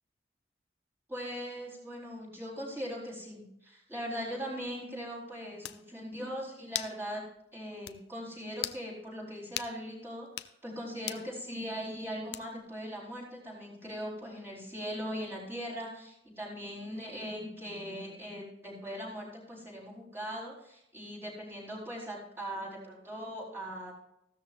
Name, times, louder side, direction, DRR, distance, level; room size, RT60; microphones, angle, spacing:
voice 1, 1.1-7.2 7.5-23.9, equal, 15° right, -4 dB, 4.3 m, -40 dB
sound 1, 5.2-5.3 5.6-5.8 6.7-7.0 7.4-7.5 7.9-8.0 8.6-8.8 9.6-9.7 10.3-10.5 11.1-11.3 12.3-12.7, left 13 dB, 70° left, 0.6 m, -37 dB
15.0 x 13.5 x 2.6 m, 0.81 s
head